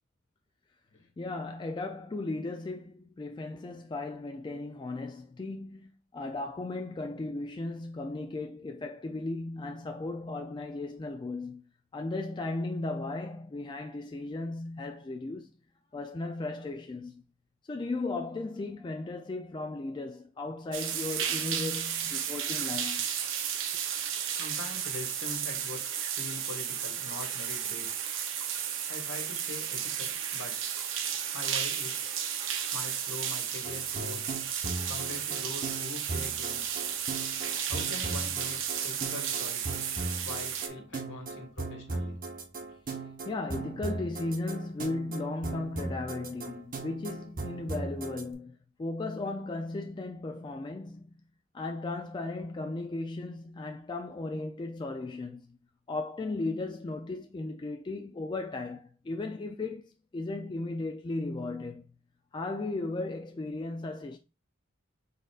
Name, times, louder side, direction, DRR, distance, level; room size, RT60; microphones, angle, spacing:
voice 1, 1.2-15.5 15.9-17.2 17.7-23.1 43.3-51.2 51.5-55.6 55.9-61.9 62.3-64.2, left 2 dB, 25° left, 0.3 m, -36 dB
sound 1, 20.7-40.7, right 8 dB, 65° right, 0.7 m, -33 dB
voice 2, 24.3-28.0 28.9-30.6 31.3-32.1 32.7-34.4 34.9-36.8 37.7-39.9 40.2-42.2, left 2 dB, 65° left, 1.8 m, -43 dB
sound 2, 33.6-48.2, right 3 dB, 40° right, 1.0 m, -38 dB
5.1 x 4.1 x 2.4 m
head